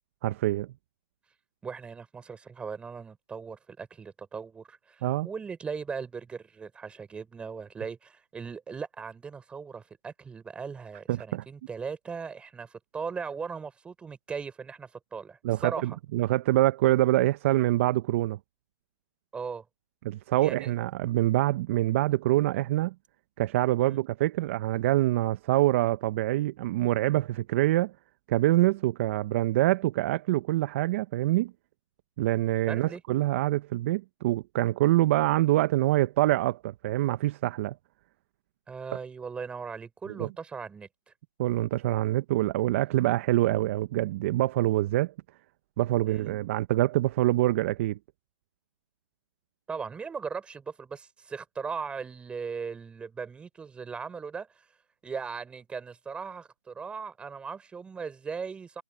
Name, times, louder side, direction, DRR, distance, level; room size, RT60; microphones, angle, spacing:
voice 1, 0.2-0.7 5.0-5.3 11.1-11.4 15.4-18.4 20.0-22.9 23.4-27.9 28.3-31.5 32.2-37.7 40.2-40.3 41.4-45.1 45.8-48.0, right 16 dB, 25° right, 1.0 m, -25 dB
voice 2, 1.6-16.0 19.3-19.7 20.4-20.7 23.8-24.0 32.7-33.0 38.7-40.9 46.1-46.3 49.7-54.5 55.0-58.8, right 5 dB, 5° right, 5.1 m, -38 dB
hypercardioid pair, 155°, 18 cm